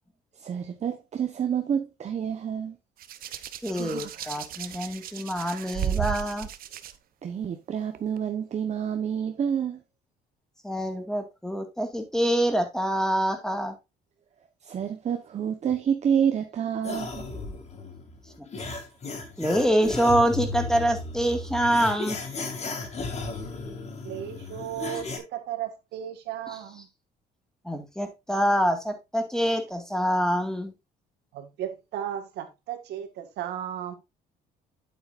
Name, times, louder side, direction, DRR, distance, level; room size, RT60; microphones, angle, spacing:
voice 1, 0.4-2.8 7.2-9.8 14.7-17.2, right 8 dB, 40° right, 1.1 m, -28 dB
Hands, 3.0-6.9 7.9-8.2, right 10 dB, 60° right, 0.9 m, -34 dB
voice 2, 3.6-6.5 10.6-13.8 19.4-22.2 27.6-30.7, equal, 5° left, 2.0 m, -25 dB
sound 1, 16.8-25.2, left 4 dB, 40° left, 2.4 m, -35 dB
voice 3, 24.0-26.9 31.3-33.9, right 11 dB, 80° right, 1.8 m, -35 dB
8.7 x 8.1 x 2.6 m
cardioid pair, 110°, 17 cm